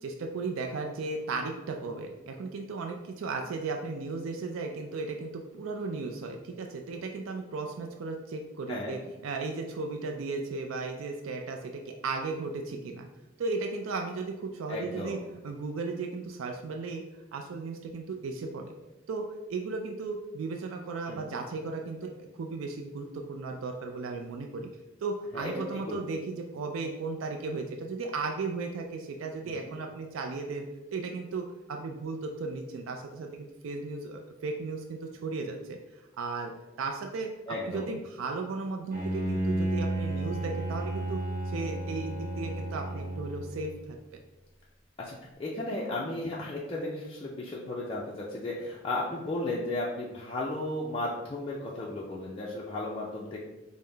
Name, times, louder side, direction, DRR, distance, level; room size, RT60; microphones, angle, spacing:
voice 1, 0.0-13.1 13.4-15.2 15.4-17.0 17.3-18.7 19.1-19.2 19.5-24.7 25.0-30.7 30.9-35.8 36.2-36.5 36.8-37.3 37.6-41.2 41.5-44.0, right 3 dB, 85° right, 3 dB, 0.4 m, -35 dB
voice 2, 14.7-15.2 21.1-21.3 25.3-26.0 29.5-29.7 37.5-37.9 45.0-53.4, left 2 dB, 25° left, -5 dB, 0.4 m, -35 dB
Bowed string instrument, 38.9-43.9, right 1 dB, 40° right, 0.8 m, -32 dB
5.4 x 2.1 x 3.3 m, 1.0 s
head